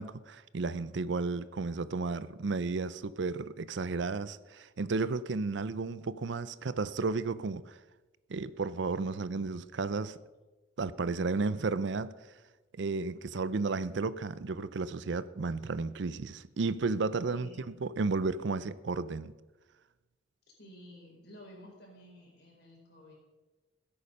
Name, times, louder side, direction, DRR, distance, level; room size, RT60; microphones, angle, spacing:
voice 1, 0.0-7.8 8.3-10.2 10.8-12.1 12.8-17.5 17.8-19.3, right 4 dB, 65° right, 0.5 m, -33 dB
voice 2, 17.3-17.7 20.6-23.1, equal, 55° left, 4.5 m, -52 dB
16.5 x 8.7 x 5.4 m
head